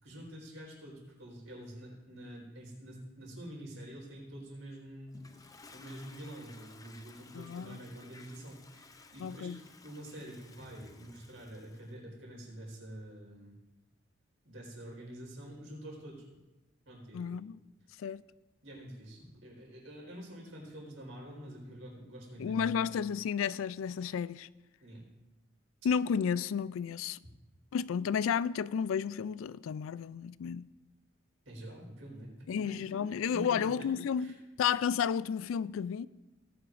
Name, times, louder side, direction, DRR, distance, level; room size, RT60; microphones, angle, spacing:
voice 1, 0.0-9.5 9.8-13.6 14.4-16.2 16.9-17.4 18.6-22.8 24.8-25.0 31.4-33.0 33.3-33.9 34.2-34.3, right 1 dB, 75° right, 4.4 m, -47 dB
Toilet flush, 5.1-11.9, left 3 dB, 20° left, 0.5 m, -56 dB
voice 2, 7.3-7.8 9.2-9.6 17.1-17.6 18.0-18.2 22.4-24.5 25.8-27.2 27.7-30.7 32.5-36.1, left 7 dB, 85° left, 0.3 m, -32 dB
18.5 x 9.8 x 2.6 m
head